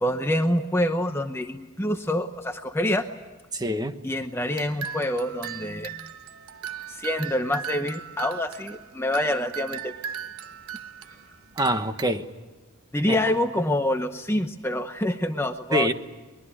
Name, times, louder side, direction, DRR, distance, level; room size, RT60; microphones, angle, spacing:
voice 1, 0.0-3.1 4.0-6.1 6.9-9.9 12.9-15.9, left 1 dB, 10° left, 0.8 m, -26 dB
voice 2, 3.5-3.9 11.6-12.2 13.1-13.2 15.7-15.9, right 1 dB, 20° right, 1.2 m, -24 dB
sound 1, 4.5-12.0, right 8 dB, 75° right, 1.1 m, -38 dB
23.0 x 21.5 x 10.0 m
head